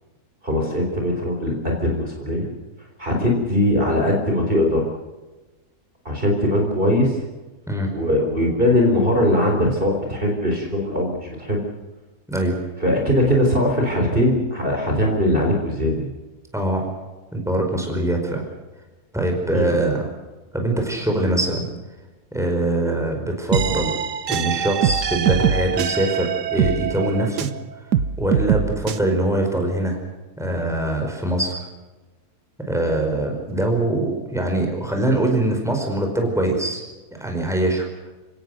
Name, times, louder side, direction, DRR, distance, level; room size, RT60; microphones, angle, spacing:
voice 1, 0.4-2.5 3.0-4.8 6.0-7.2 7.9-11.6 12.8-16.1 19.5-19.8, left 1 dB, 30° right, 1 dB, 4.2 m, -20 dB
voice 2, 12.3-12.6 16.5-16.9 17.3-18.4 19.1-20.0 20.5-21.7 22.3-23.9 24.3-27.5 28.2-30.0 30.4-31.6 32.7-36.8 37.1-37.9, right 1 dB, ahead, 2 dB, 5.0 m, -23 dB
sound 1, 23.5-27.6 27.9-29.0, right 8 dB, 85° right, 1.6 m, -22 dB
30.0 x 17.5 x 6.6 m, 1.2 s
omnidirectional pair, 1.7 m